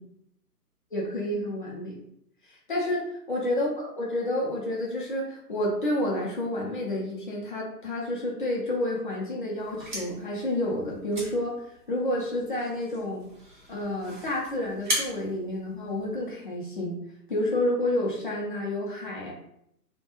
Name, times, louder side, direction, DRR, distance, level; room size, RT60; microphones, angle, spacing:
voice 1, 0.9-2.0 2.7-3.0 3.3-13.3 13.7-17.0 17.3-19.3, left 1 dB, 35° left, -3 dB, 0.5 m, -29 dB
sound 1, 9.6-16.4, equal, 30° right, 0.6 m, -38 dB
2.2 x 2.2 x 2.9 m, 0.74 s
figure-of-eight pair, 140°, 49 cm